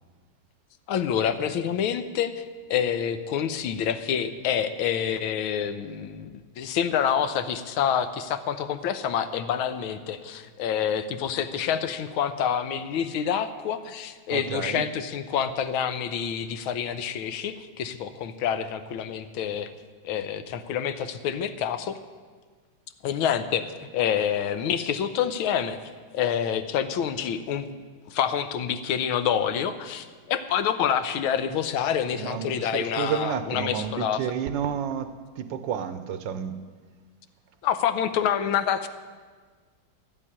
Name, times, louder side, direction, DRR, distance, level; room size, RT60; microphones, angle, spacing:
voice 1, 0.9-2.4 2.7-19.7 20.0-22.0 23.0-25.8 26.1-27.7 28.1-34.2 37.6-38.9, left 8 dB, 85° left, 11 dB, 1.6 m, -27 dB
voice 2, 14.3-14.9 32.1-36.6, right 8 dB, 70° right, 11 dB, 1.3 m, -31 dB
12.0 x 7.4 x 9.7 m, 1.5 s
omnidirectional pair, 2.2 m